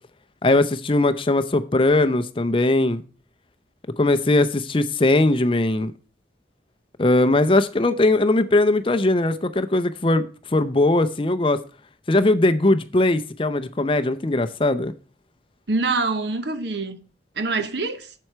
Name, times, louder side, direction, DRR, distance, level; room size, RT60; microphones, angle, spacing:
voice 1, 0.4-3.0 4.0-5.9 7.0-11.6 12.1-14.9, left 2 dB, 30° left, 0.6 m, -20 dB
voice 2, 15.7-17.0 17.4-18.1, right 3 dB, 70° right, 1.0 m, -25 dB
7.8 x 7.6 x 4.6 m
head